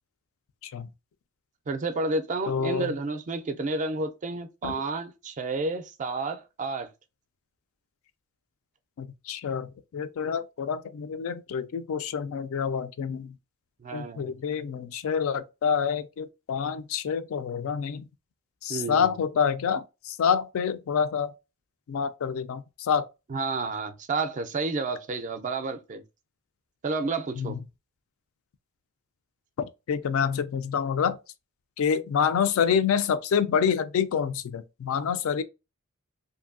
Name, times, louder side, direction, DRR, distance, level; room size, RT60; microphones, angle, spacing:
voice 1, 1.7-6.9 13.8-14.4 18.7-19.1 23.3-26.0 26.8-27.6, right 3 dB, 35° right, 0.4 m, -30 dB
voice 2, 2.5-2.9 4.6-4.8 9.0-13.3 13.9-18.1 18.6-21.3 21.9-23.0 27.4-27.5 29.9-31.2 31.8-35.4, left 7 dB, 65° left, 0.3 m, -27 dB
2.6 x 2.6 x 2.4 m
head